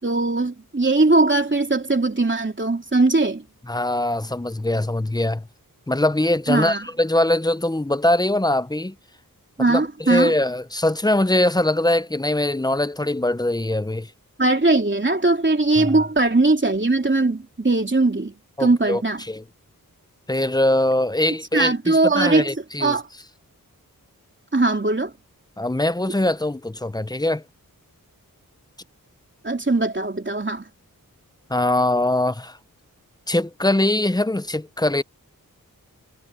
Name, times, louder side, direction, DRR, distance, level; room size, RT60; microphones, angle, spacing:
voice 1, 0.0-3.4 6.5-6.9 9.6-10.3 14.4-18.3 18.6-19.2 21.5-22.5 22.8-23.1 24.5-25.1 29.4-30.7, right 2 dB, 30° right, 3.2 m, -20 dB
voice 2, 3.7-5.5 5.9-8.9 9.7-14.1 15.8-16.0 18.6-19.4 20.3-23.0 25.6-27.4 31.5-32.6 33.3-35.0, left 1 dB, 10° left, 0.7 m, -22 dB
wide cardioid pair, 60°, 36 cm